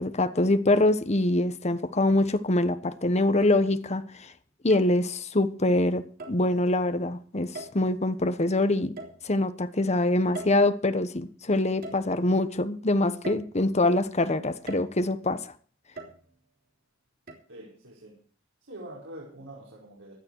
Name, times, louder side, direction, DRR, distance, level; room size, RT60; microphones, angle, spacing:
voice 1, 0.0-4.3 4.6-8.9 9.2-15.4, left 2 dB, 35° left, 1.2 m, -24 dB
sound 1, 1.0-1.1 2.1-2.7 3.4-4.0 4.7-5.0 6.2-6.5 7.6-8.1 9.0-9.7 10.4-11.2 11.8-12.5 13.2-14.0 14.7-15.2 16.0-16.6 17.3-17.4, right 2 dB, 50° right, 3.6 m, -43 dB
voice 2, 17.5-18.2 18.7-20.1, right 1 dB, 85° right, 4.8 m, -44 dB
16.0 x 11.5 x 4.7 m
head